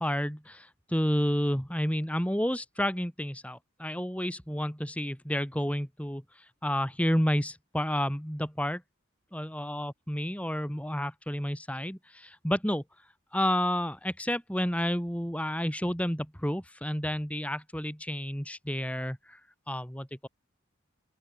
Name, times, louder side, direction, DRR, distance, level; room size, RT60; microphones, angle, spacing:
voice 1, 0.0-6.2 6.6-8.8 9.3-12.8 13.3-19.4 19.7-20.3, equal, 5° left, 5.3 m, -30 dB
open air
head